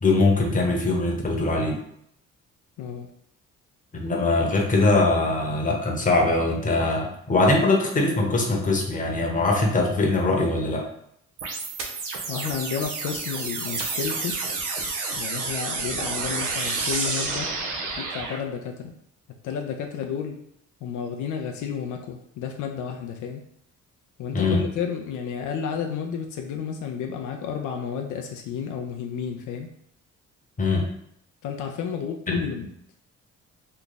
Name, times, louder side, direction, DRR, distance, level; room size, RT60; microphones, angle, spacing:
voice 1, 0.0-1.8 3.9-10.8 24.3-24.6 30.6-30.9 32.3-32.4, left 2 dB, 25° left, 0 dB, 0.9 m, -22 dB
sound 1, 11.4-18.4, right 3 dB, 90° right, 0.7 m, -29 dB
voice 2, 12.3-14.4 15.2-17.5 18.0-19.0 19.4-20.4 20.8-23.4 24.2-29.7 31.4-32.7, left 7 dB, 80° left, 3 dB, 0.5 m, -31 dB
3.2 x 2.3 x 3.9 m, 0.73 s
cardioid pair, 90°, 30 cm